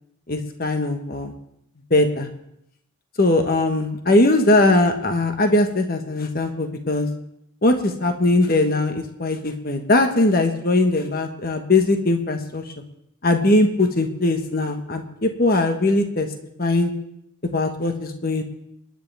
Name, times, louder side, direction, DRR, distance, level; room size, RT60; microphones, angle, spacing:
voice 1, 0.3-1.3 1.9-2.3 3.2-7.1 7.6-12.6 13.2-16.3 16.6-16.9 17.4-18.4, left 2 dB, 45° left, 5 dB, 1.4 m, -20 dB
25.5 x 10.5 x 3.5 m, 0.78 s
head